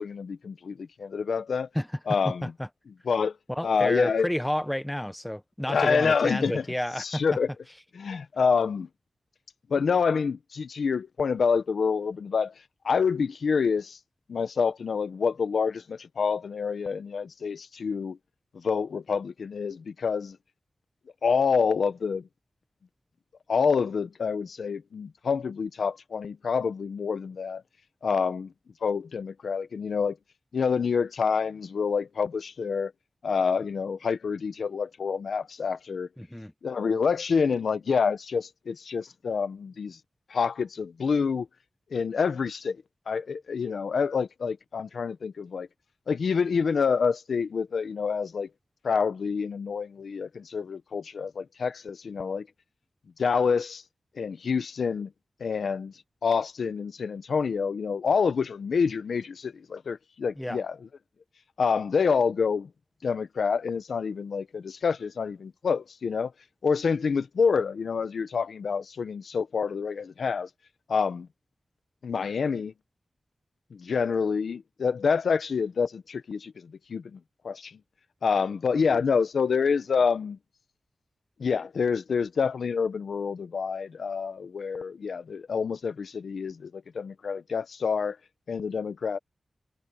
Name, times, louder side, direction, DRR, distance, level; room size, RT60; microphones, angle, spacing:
voice 1, 0.0-1.7 2.1-2.5 3.1-3.4 3.6-4.3 5.7-6.6 7.0-7.5 7.9-8.9 9.7-12.5 12.8-14.0 14.3-18.2 18.5-20.4 21.2-22.3 23.5-27.6 28.0-28.5 28.8-30.2 30.5-32.9 33.2-36.1 36.6-40.0 40.3-41.5 41.9-42.8 43.1-45.7 46.1-48.5 48.8-52.5 53.2-53.8 54.2-55.1 55.4-55.9 56.2-60.8 61.6-62.7 63.0-66.3 66.6-70.5 70.9-71.3 72.0-72.7 73.7-77.8 78.2-80.4 81.4-88.2 88.5-89.2, left 5 dB, 80° left, 1.0 m, -27 dB
voice 2, 2.2-2.7 3.5-7.2 36.2-36.5 60.4-60.6, equal, 5° left, 1.0 m, -30 dB
wide cardioid pair, 120°, 0 cm